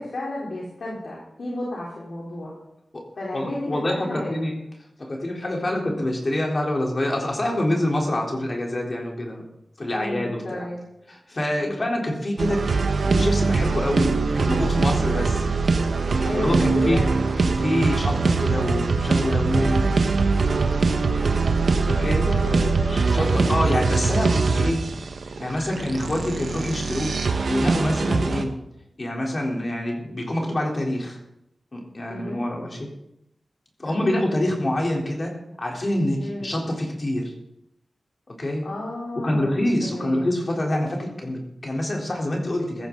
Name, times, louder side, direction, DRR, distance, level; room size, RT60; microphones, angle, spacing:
voice 1, 0.0-2.5 3.2-4.3 5.7-5.9 9.9-10.8 11.6-11.8 16.2-17.0 21.9-23.6 28.1-28.4 32.1-32.4 33.8-34.2 36.2-36.5 38.6-39.5 39.8-40.2, left 1 dB, 75° left, -5 dB, 3.8 m, -32 dB
voice 2, 3.3-4.6 5.0-9.4 9.8-10.7 11.1-12.6 13.0-15.5 16.3-17.0 17.4-19.9 22.0-22.3 22.9-24.8 25.4-27.1 27.4-28.5 29.0-31.2 31.7-32.9 33.8-37.3 38.3-38.7 39.1-42.9, left 1 dB, 40° left, -1 dB, 3.7 m, -26 dB
sound 1, 12.4-28.4, right 4 dB, 85° right, 1.4 m, -22 dB
16.0 x 13.5 x 4.0 m, 0.82 s
wide cardioid pair, 80°, 0 cm